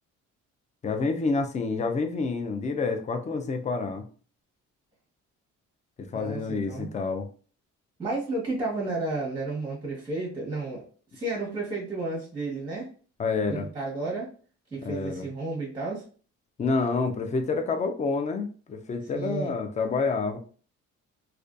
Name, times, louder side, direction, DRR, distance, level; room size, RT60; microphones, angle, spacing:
voice 1, 0.8-4.0 6.0-7.3 13.2-13.7 14.8-15.3 16.6-20.4, left 4 dB, 25° left, 6 dB, 0.4 m, -28 dB
voice 2, 6.1-6.9 8.0-10.8 11.1-12.9 13.5-14.3 14.7-16.0 19.1-19.5, right 2 dB, 15° right, -4 dB, 1.0 m, -32 dB
2.4 x 2.2 x 2.4 m, 0.40 s
cardioid pair, 90°, 30 cm